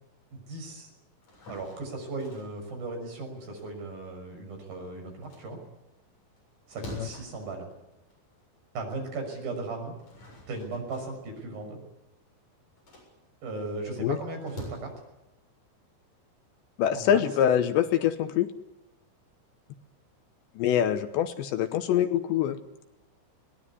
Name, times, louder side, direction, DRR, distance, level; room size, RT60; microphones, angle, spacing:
voice 1, 0.3-0.9 1.5-5.6 6.7-7.7 8.7-9.9 10.5-11.8 13.4-14.9 16.9-17.2, right 3 dB, 50° right, 3 dB, 7.9 m, -37 dB
sound 1, 1.1-4.7 5.1-8.6 9.0-9.1 9.8-14.7, left 1 dB, 35° left, 8.8 m, -48 dB
voice 2, 16.8-18.5 20.6-22.6, left 10 dB, 75° left, 9 dB, 3.0 m, -25 dB
23.0 x 19.5 x 9.7 m, 0.95 s
omnidirectional pair, 5.6 m